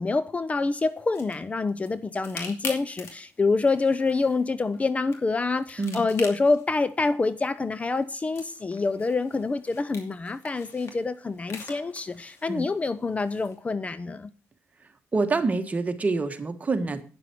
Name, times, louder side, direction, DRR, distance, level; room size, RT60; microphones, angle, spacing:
voice 1, 0.0-14.3, left 3 dB, 25° left, 0.6 m, -26 dB
sound 1, 0.5-13.6, left 4 dB, 65° left, 2.6 m, -45 dB
voice 2, 15.1-17.0, right 3 dB, 30° right, 1.4 m, -26 dB
9.5 x 7.4 x 6.0 m
cardioid pair, 90°, 5 cm